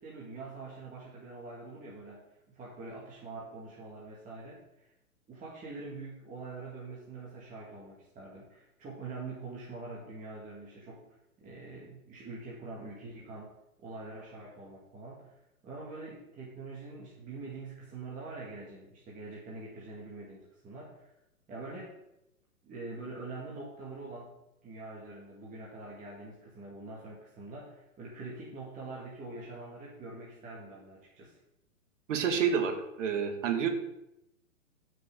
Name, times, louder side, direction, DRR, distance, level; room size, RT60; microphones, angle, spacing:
voice 1, 0.0-4.9 5.3-11.0 11.4-13.5 13.8-15.3 15.6-21.1 21.5-22.0 22.6-24.3 24.6-31.4, right 3 dB, 20° right, -5 dB, 2.3 m, -44 dB
voice 2, 32.1-33.7, right 7 dB, 55° right, 5 dB, 2.1 m, -29 dB
14.0 x 6.4 x 3.9 m, 0.87 s
hypercardioid pair, 125°, 43 cm